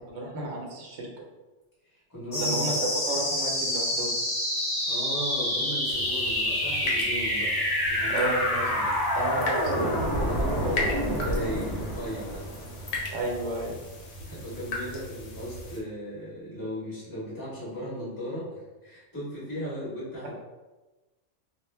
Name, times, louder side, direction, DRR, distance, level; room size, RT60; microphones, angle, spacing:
voice 1, 0.1-1.1 2.4-4.2 8.1-8.8 9.1-9.9 13.1-13.7, right 1 dB, 70° right, -1 dB, 0.9 m, -32 dB
voice 2, 1.9-2.7 4.9-7.5 7.9-8.3 8.7-8.9 10.1-12.4 14.2-20.4, equal, 15° left, -8 dB, 1.0 m, -36 dB
sound 1, 2.3-13.3, left 1 dB, 40° left, 0.3 m, -28 dB
sound 2, 5.9-15.8, left 1 dB, 85° left, 1.0 m, -37 dB
2.4 x 2.1 x 3.2 m, 1.2 s
omnidirectional pair, 1.3 m